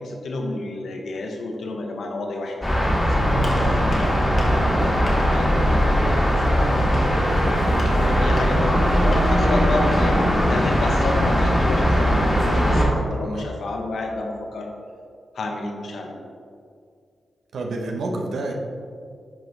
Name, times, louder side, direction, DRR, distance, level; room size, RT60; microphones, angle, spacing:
voice 1, 0.0-7.1 7.6-14.7 15.3-16.2, left 2 dB, 70° left, 2 dB, 1.0 m, -30 dB
sound 1, 2.6-12.9, equal, 15° left, 1.6 m, -19 dB
Gunshot gunfire, 3.4-9.5, left 1 dB, 35° left, 1.2 m, -37 dB
voice 2, 17.5-18.5, right 2 dB, 80° right, 2 dB, 0.9 m, -29 dB
10.5 x 4.6 x 3.3 m, 2.2 s
wide cardioid pair, 160°, 0 cm